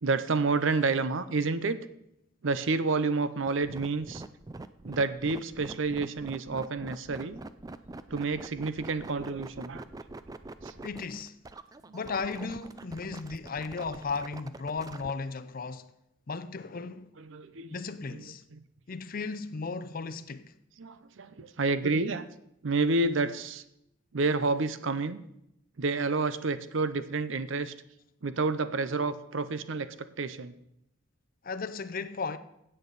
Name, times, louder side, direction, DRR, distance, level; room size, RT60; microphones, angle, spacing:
voice 1, 0.0-1.8 2.4-4.2 4.8-7.4 8.1-9.8 10.6-10.8 17.2-17.8 18.1-18.3 18.5-18.6 20.8-22.3 22.6-23.6 24.1-25.2 25.8-27.7 28.2-29.9 30.2-30.5, right 3 dB, 65° right, 0.6 m, -29 dB
sound 1, 3.5-15.1, right 2 dB, 20° right, 0.3 m, -44 dB
voice 2, 10.8-11.3 11.9-15.9 16.3-17.1 17.7-18.4 18.9-20.5 31.4-32.4, left 4 dB, 45° left, 0.6 m, -35 dB
16.0 x 7.8 x 4.0 m
head